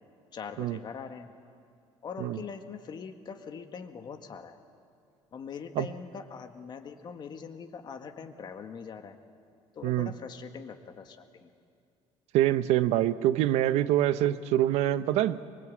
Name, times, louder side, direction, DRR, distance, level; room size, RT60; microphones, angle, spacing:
voice 1, 0.3-1.3 2.0-4.6 5.3-9.2 9.7-11.5, left 6 dB, 40° left, 7 dB, 1.7 m, -42 dB
voice 2, 12.3-15.5, right 13 dB, 75° right, 13 dB, 0.8 m, -25 dB
23.5 x 22.5 x 8.6 m, 2.3 s
cardioid pair, 130°, 11 cm